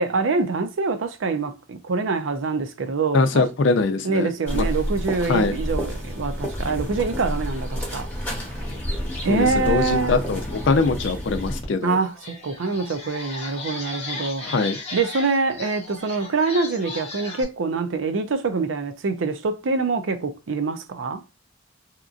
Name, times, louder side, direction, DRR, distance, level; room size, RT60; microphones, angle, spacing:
voice 1, 0.0-3.5 4.0-8.1 8.4-8.5 9.2-10.2 11.8-14.4 14.9-21.2, right 4 dB, 75° right, 0.5 m, -25 dB
voice 2, 3.1-4.6 5.3-5.5 9.3-12.0 14.4-14.8, left 3 dB, 65° left, 0.4 m, -22 dB
sound 1, 4.5-11.6, equal, 10° left, 1.0 m, -29 dB
sound 2, 11.6-11.7 12.1-17.4, left 3 dB, 35° left, 0.9 m, -36 dB
2.8 x 2.5 x 2.4 m
head